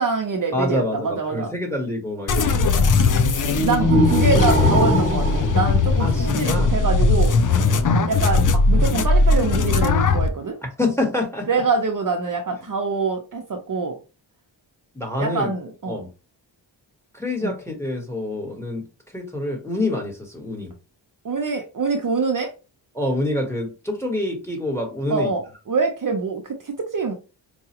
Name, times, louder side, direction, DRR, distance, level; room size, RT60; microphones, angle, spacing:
voice 1, 0.0-1.5 2.4-2.6 3.6-7.3 8.1-10.6 11.5-14.0 15.2-16.0 17.4-17.5 21.2-22.5 25.1-27.1, right 4 dB, 45° right, 3 dB, 0.6 m, -25 dB
voice 2, 0.5-2.7 3.8-3.9 6.0-6.7 7.5-8.1 10.6-11.5 14.9-15.5 15.9-16.1 17.1-18.8 19.1-20.7 22.9-25.3, left 1 dB, 5° left, 1 dB, 1.3 m, -27 dB
sound 1, 2.3-10.3, left 4 dB, 45° left, 0.5 m, -19 dB
sound 2, 3.5-6.6, right 1 dB, 20° right, 1.0 m, -22 dB
4.7 x 2.3 x 2.9 m, 0.30 s
wide cardioid pair, 85°, 46 cm